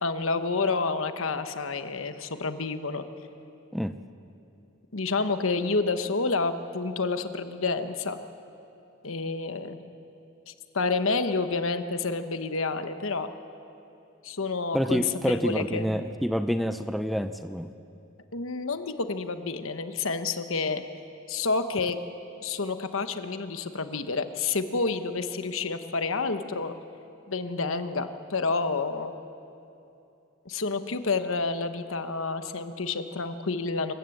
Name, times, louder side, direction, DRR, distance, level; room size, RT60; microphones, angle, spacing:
voice 1, 0.0-3.0 4.9-8.2 9.0-9.8 10.5-13.3 14.2-15.9 18.3-20.8 21.3-22.0 22.4-26.7 27.3-29.1 30.4-33.9, left 4 dB, 70° left, 9 dB, 1.1 m, -29 dB
voice 2, 14.7-17.7, equal, ahead, 9 dB, 0.5 m, -27 dB
26.5 x 15.0 x 7.9 m, 2.7 s
head